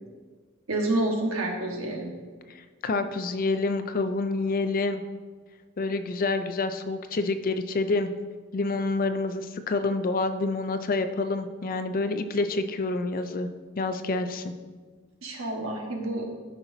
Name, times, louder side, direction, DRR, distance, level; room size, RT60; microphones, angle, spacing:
voice 1, 0.7-2.1 15.2-16.3, right 1 dB, 70° right, 0 dB, 1.4 m, -28 dB
voice 2, 2.8-5.0 5.8-8.1 8.5-13.5 13.8-14.5, left 3 dB, 40° left, 9 dB, 0.4 m, -27 dB
12.5 x 5.7 x 2.7 m, 1.5 s
head